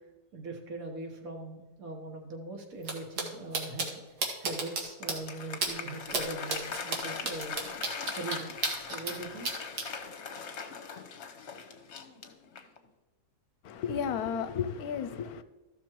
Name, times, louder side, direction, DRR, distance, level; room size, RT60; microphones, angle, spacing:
voice 1, 0.3-4.0 4.4-7.7 8.2-9.5, right 2 dB, 60° right, 3 dB, 1.7 m, -41 dB
sound 1, 2.8-2.9 3.2-3.3 3.5-3.9 4.2-4.8 5.1-5.2 5.6-5.7 6.1-6.2 6.5-9.1 9.4-9.8, right 4 dB, 85° right, 2.0 m, -31 dB
Applause, 4.7-12.9, left 5 dB, 50° left, 1.1 m, -40 dB
voice 2, 13.6-15.4, left 7 dB, 75° left, 12 dB, 1.0 m, -33 dB
13.5 x 6.2 x 4.5 m, 1.1 s
omnidirectional pair, 1.7 m